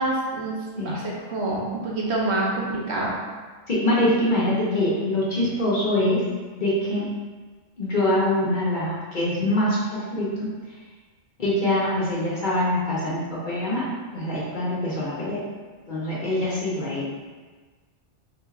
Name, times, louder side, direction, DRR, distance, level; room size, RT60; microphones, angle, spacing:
voice 1, 0.0-3.2, right 2 dB, 65° right, -4 dB, 0.9 m, -27 dB
voice 2, 3.7-6.2 6.5-7.1 7.8-10.5 11.4-13.9 14.1-15.4 15.9-17.0, left 1 dB, 45° left, -7 dB, 0.8 m, -24 dB
3.9 x 2.9 x 2.3 m, 1.4 s
omnidirectional pair, 1.3 m